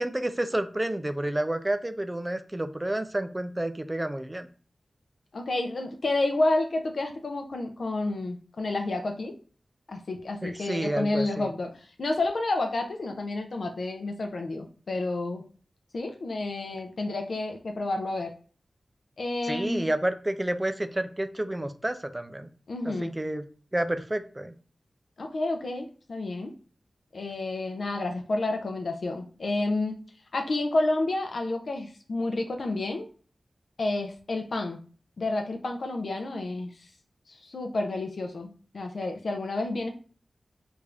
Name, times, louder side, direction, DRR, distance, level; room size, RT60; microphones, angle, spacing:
voice 1, 0.0-4.5 10.4-11.5 19.5-22.5 22.8-23.4 23.7-24.5, right 1 dB, 20° right, 9 dB, 0.4 m, -30 dB
voice 2, 5.3-9.3 9.9-15.4 15.9-18.3 19.2-19.9 22.7-23.1 25.2-26.5 27.1-30.0 30.3-33.1 33.8-34.8 35.2-36.8 37.3-39.9, left 2 dB, 70° left, 4 dB, 0.5 m, -30 dB
3.4 x 2.5 x 3.3 m, 0.40 s
wide cardioid pair, 65°, 0 cm